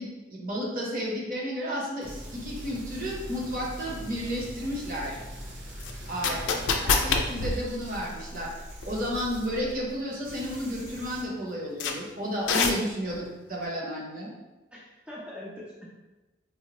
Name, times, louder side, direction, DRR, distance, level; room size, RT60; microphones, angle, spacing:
voice 1, 0.0-5.2 6.1-6.4 6.8-8.5 8.9-14.3, equal, 45° right, -3 dB, 0.8 m, -32 dB
sound 1, 2.0-10.0 10.2-11.2, equal, 80° right, 1.0 m, -42 dB
sound 2, 3.9-4.0 5.8-8.5 8.8-8.9 9.6-9.9 10.2-10.3 10.8-10.9 11.8-11.9 12.5-13.2, left 4 dB, 90° left, 0.4 m, -26 dB
voice 2, 6.2-6.7 13.0-13.3 14.7-15.9, left 1 dB, 5° right, -8 dB, 0.5 m, -42 dB
4.1 x 2.2 x 2.9 m, 1.1 s
head